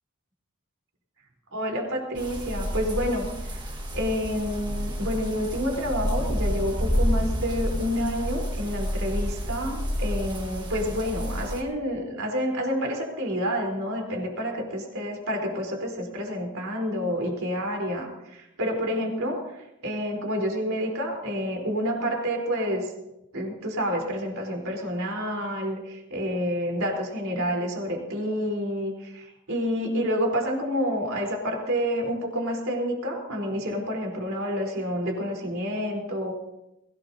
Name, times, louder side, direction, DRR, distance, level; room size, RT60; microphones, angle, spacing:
voice 1, 1.5-3.6 3.9-22.9 23.3-36.3, equal, 70° right, 0 dB, 4.3 m, -29 dB
sound 1, 2.1-11.6, equal, 20° right, 1.7 m, -29 dB
22.0 x 17.0 x 2.9 m, 0.91 s
head